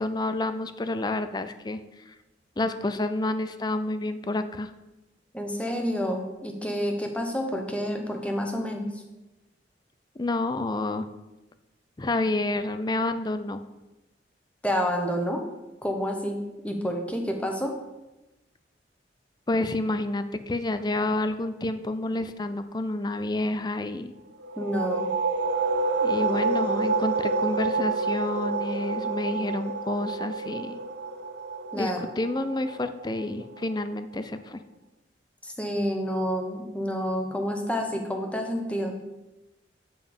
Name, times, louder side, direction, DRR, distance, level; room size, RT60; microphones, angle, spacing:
voice 1, 0.0-1.8 2.1-2.2 2.6-4.7 10.2-11.1 12.0-13.6 19.5-24.1 26.0-30.8 31.7-34.6, left 2 dB, 25° left, 10 dB, 0.5 m, -29 dB
voice 2, 5.3-8.8 14.6-15.4 15.8-16.4 16.6-17.7 24.6-25.1 31.7-32.0 35.4-39.0, equal, 5° left, 3 dB, 1.0 m, -29 dB
sound 1, 24.4-33.8, right 4 dB, 65° right, 0.6 m, -28 dB
7.0 x 5.3 x 7.2 m, 1.0 s
head